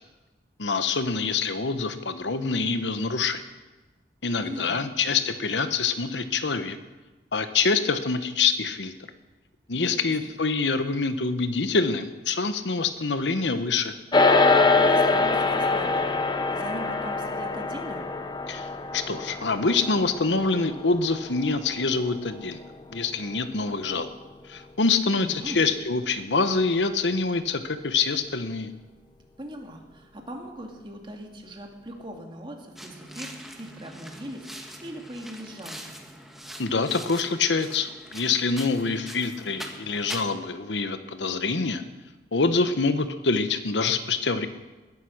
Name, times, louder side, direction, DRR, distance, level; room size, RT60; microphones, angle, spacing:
voice 1, 0.6-3.4 4.2-6.8 7.3-8.9 9.7-13.9 18.5-22.6 22.9-24.1 24.5-28.7 36.6-41.8 42.3-44.5, left 4 dB, 85° left, 10 dB, 1.1 m, -25 dB
voice 2, 4.4-4.9 9.7-10.3 14.5-18.0 25.1-25.6 29.4-33.3 33.6-36.0, right 1 dB, 30° right, 2 dB, 2.4 m, -40 dB
sound 1, 14.1-23.6, left 3 dB, 25° left, 0.8 m, -25 dB
sound 2, 32.8-40.2, equal, ahead, 1.5 m, -42 dB
20.5 x 10.5 x 6.5 m, 1.2 s
head